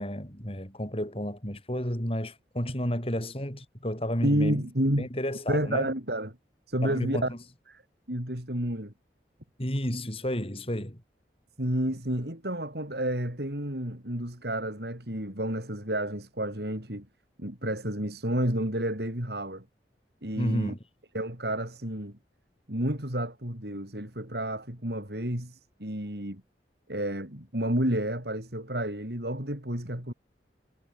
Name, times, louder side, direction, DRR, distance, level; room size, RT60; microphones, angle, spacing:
voice 1, 0.0-4.6 5.0-5.9 6.8-7.4 9.6-11.0 20.4-20.8, equal, 35° left, 6.6 m, -31 dB
voice 2, 4.2-5.1 5.5-6.4 6.7-7.3 7.7-7.8 8.1-8.9 11.6-17.1 17.4-19.7 20.2-20.7 21.1-22.2 22.7-26.4 26.9-30.1, right 1 dB, 65° right, 6.4 m, -30 dB
head